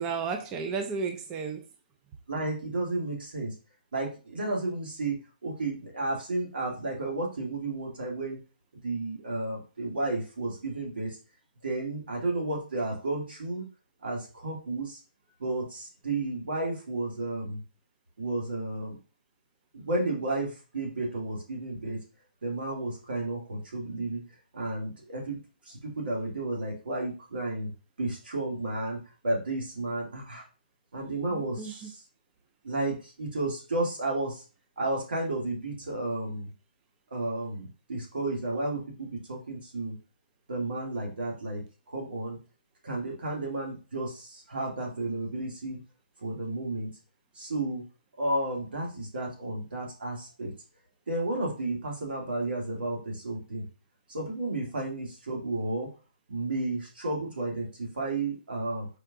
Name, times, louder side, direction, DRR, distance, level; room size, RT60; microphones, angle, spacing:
voice 1, 0.0-1.7 31.3-31.9, right 5 dB, 15° right, 5 dB, 0.3 m, -33 dB
voice 2, 2.3-3.5 3.9-8.4 8.8-11.1 11.6-13.7 14.0-15.0 15.4-17.6 18.2-19.0 19.7-22.0 22.4-24.2 24.5-25.4 25.7-27.7 28.0-30.4 30.9-32.0 32.6-34.4 34.8-36.5 37.1-39.9 40.5-41.6 41.9-42.4 42.8-45.8 46.2-46.9 47.3-47.8 48.2-50.5 51.1-53.6 54.1-55.9 56.3-58.9, right 2 dB, 80° right, -1 dB, 2.3 m, -32 dB
4.6 x 4.5 x 2.5 m, 0.34 s
hypercardioid pair, 165°, 5 cm